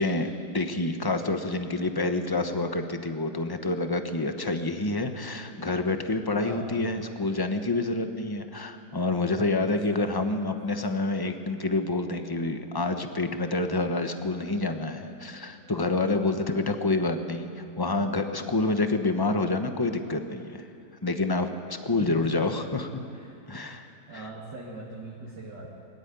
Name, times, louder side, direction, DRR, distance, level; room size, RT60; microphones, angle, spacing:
voice 1, 0.0-20.6 21.0-23.0 23.5-23.9 24.1-24.3, left 2 dB, 15° left, 7 dB, 0.9 m, -28 dB
voice 2, 6.4-7.1 9.9-10.5 15.3-15.6 22.0-22.6 23.1-23.3 23.8-25.7, right 2 dB, 85° right, -5 dB, 3.1 m, -41 dB
22.5 x 12.5 x 9.6 m, 2.7 s
omnidirectional pair, 1.8 m